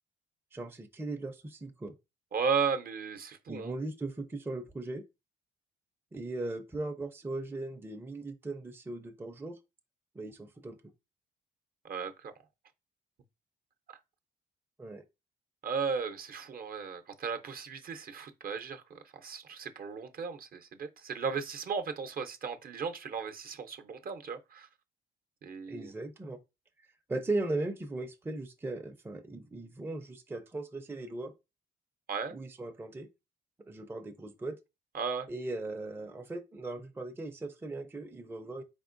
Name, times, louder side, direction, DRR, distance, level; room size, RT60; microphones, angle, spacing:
voice 1, 0.5-1.9 3.5-5.0 6.1-9.6 10.1-10.8 14.8-15.0 25.7-26.4 27.1-31.3 32.3-33.1 33.7-34.6 35.3-38.6, right 2 dB, 10° right, 0.5 m, -38 dB
voice 2, 2.3-3.7 11.8-12.3 13.9-14.0 15.6-24.7 25.4-25.9 32.1-32.4 34.9-35.3, right 5 dB, 45° right, 0.7 m, -35 dB
4.2 x 3.5 x 2.5 m
cardioid pair, 90°, 20 cm